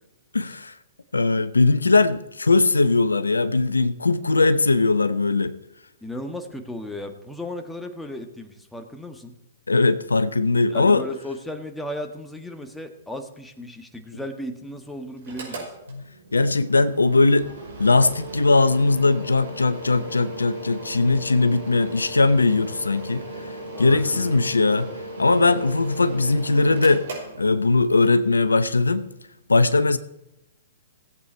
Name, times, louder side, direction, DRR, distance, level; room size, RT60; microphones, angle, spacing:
voice 1, 0.3-0.7 1.1-5.5 9.7-11.0 15.9-17.5 17.8-23.5 23.8-24.9 25.2-27.1 27.4-29.1 29.5-30.0, left 3 dB, 90° left, 13 dB, 0.7 m, -20 dB
voice 2, 6.0-9.3 10.7-15.7 23.7-24.4, left 1 dB, 5° left, 5 dB, 1.4 m, -35 dB
Mechanical fan, 15.2-28.0, right 1 dB, 70° right, 5.2 m, -37 dB
17.0 x 8.4 x 4.5 m, 0.90 s
hypercardioid pair, 120°, 0 cm